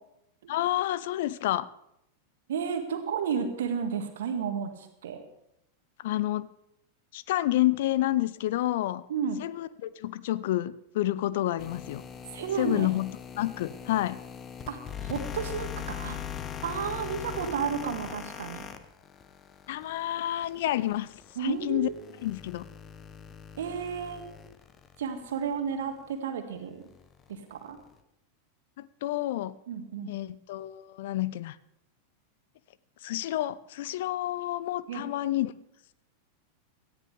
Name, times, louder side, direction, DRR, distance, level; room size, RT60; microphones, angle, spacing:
voice 1, 0.5-1.7 6.0-6.5 7.1-9.0 9.4-12.0 12.6-14.2 19.7-21.1 21.4-21.9 22.2-22.7 28.8-29.6 30.1-31.6 33.0-35.5, left 14 dB, 55° left, 19 dB, 0.5 m, -29 dB
voice 2, 2.5-5.2 9.1-9.4 12.3-12.9 14.7-16.2 16.6-18.7 21.4-22.0 23.5-24.2 25.0-26.8 27.3-27.8 29.7-30.1 34.9-35.1, right 7 dB, 60° right, 6 dB, 1.9 m, -32 dB
sound 1, 11.6-25.7 26.1-26.2 26.8-28.0, left 8 dB, 25° left, 1.0 m, -41 dB
17.5 x 14.0 x 3.5 m, 0.80 s
figure-of-eight pair, 90°, 0 cm